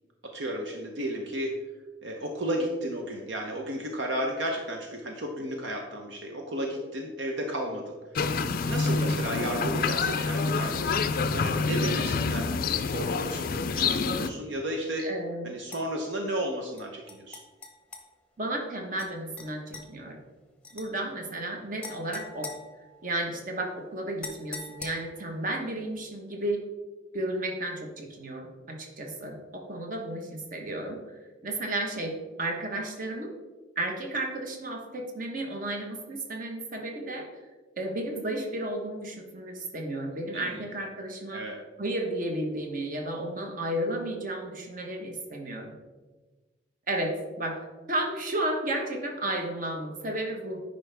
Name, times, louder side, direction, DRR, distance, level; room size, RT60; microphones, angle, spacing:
voice 1, 0.3-1.5 2.0-7.9 8.6-12.5 12.9-15.1 15.4-17.4 40.3-40.6 41.3-41.6, right 1 dB, 65° right, 2 dB, 0.8 m, -33 dB
sound 1, 8.1-14.3, left 4 dB, 50° left, 0.4 m, -27 dB
voice 2, 8.9-9.2 15.0-15.6 18.4-20.2 20.7-22.5 23.0-26.6 27.1-31.2 31.4-33.3 33.8-37.5 37.8-41.4 41.8-45.7 46.9-50.6, right 1 dB, 45° right, 2 dB, 1.2 m, -33 dB
sound 2, 15.7-15.8 16.8-18.1 19.0-19.1 19.4-19.9 20.6-20.9 21.8-23.3 24.2-25.3, left 3 dB, 5° left, 0.9 m, -43 dB
9.6 x 5.4 x 3.4 m, 1.3 s
head